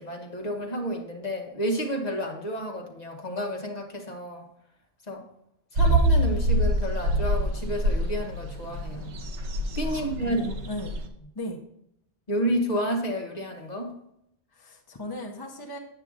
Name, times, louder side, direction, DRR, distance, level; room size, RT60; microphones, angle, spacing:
voice 1, 0.0-4.4 5.1-5.2 5.7-9.1 9.8-10.5 12.3-13.9, equal, 40° left, 2 dB, 1.0 m, -30 dB
sound 1, 5.8-11.1, right 1 dB, 75° right, 1.1 m, -25 dB
voice 2, 9.8-11.0 11.3-11.6 14.5-15.8, left 1 dB, 25° left, 1 dB, 0.7 m, -37 dB
8.6 x 7.8 x 2.5 m, 0.77 s
omnidirectional pair, 1.2 m